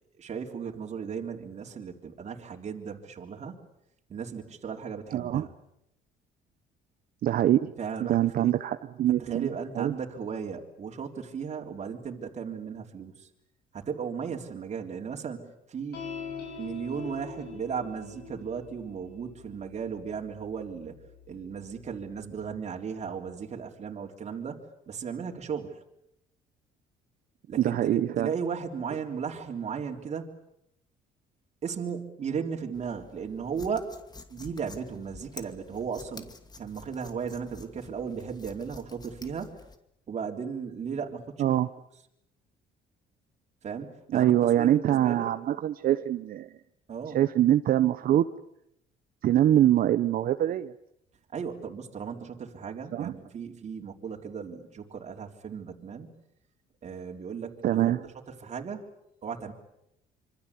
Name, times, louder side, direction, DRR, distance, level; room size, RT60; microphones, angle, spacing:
voice 1, 0.2-3.6 4.1-5.5 7.8-8.5 9.2-13.3 13.7-16.0 16.6-21.0 21.3-24.6 24.9-25.7 27.5-30.3 31.6-33.9 34.3-36.3 36.6-39.6 40.1-41.6 43.6-45.3 46.9-47.2 51.3-56.1 56.8-58.0 58.4-58.8 59.2-59.5, right 6 dB, 40° right, 1 dB, 3.7 m, -36 dB
voice 2, 5.1-5.5 7.2-7.7 8.0-9.5 9.8-9.9 27.6-28.3 41.4-41.7 44.1-46.5 47.1-48.3 49.2-50.7 52.9-53.1 57.6-58.0, right 12 dB, 60° right, 10 dB, 1.0 m, -24 dB
sound 1, 15.9-22.6, left 5 dB, 75° left, 7.6 m, -44 dB
sound 2, 32.7-39.8, left 3 dB, 25° left, 2.4 m, -49 dB
26.5 x 25.5 x 8.5 m, 0.79 s
cardioid pair, 110°, 17 cm